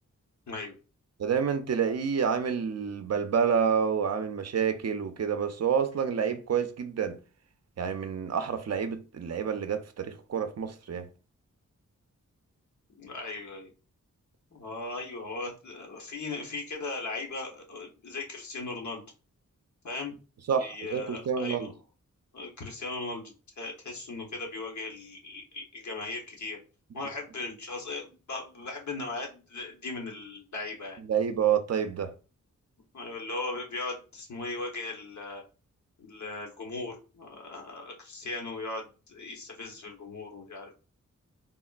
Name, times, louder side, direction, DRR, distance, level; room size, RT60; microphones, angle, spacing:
voice 1, 1.2-7.2 7.8-11.0 20.5-21.7 31.1-32.1, right 7 dB, 55° right, 0.5 m, -28 dB
voice 2, 13.0-13.7 14.5-19.1 19.8-20.1 20.6-21.7 22.3-23.2 23.6-26.6 26.9-31.0 32.9-35.4 36.0-40.7, left 3 dB, 60° left, 1.0 m, -38 dB
3.5 x 2.1 x 2.4 m
cardioid pair, 55°, 32 cm